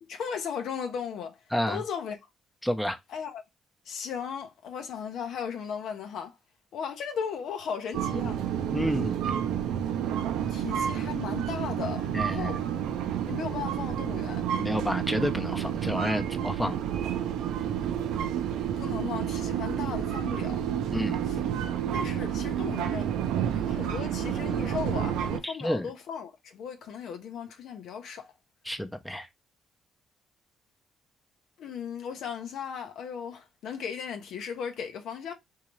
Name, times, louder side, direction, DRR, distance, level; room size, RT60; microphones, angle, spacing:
voice 1, 0.0-1.4 1.7-2.2 3.1-3.4 3.8-6.4 6.7-8.4 10.5-12.6 13.3-14.5 18.8-20.6 21.2-21.4 21.9-23.1 23.6-28.3 31.6-35.3, left 7 dB, 75° left, 0.8 m, -36 dB
voice 2, 2.6-3.0 8.7-9.4 12.1-12.5 14.6-16.8 20.9-21.2 25.4-25.9 28.7-29.3, equal, 5° left, 0.7 m, -30 dB
sound 1, 7.9-25.4, right 9 dB, 90° right, 0.5 m, -30 dB
3.7 x 2.8 x 3.1 m
cardioid pair, 90°, 0 cm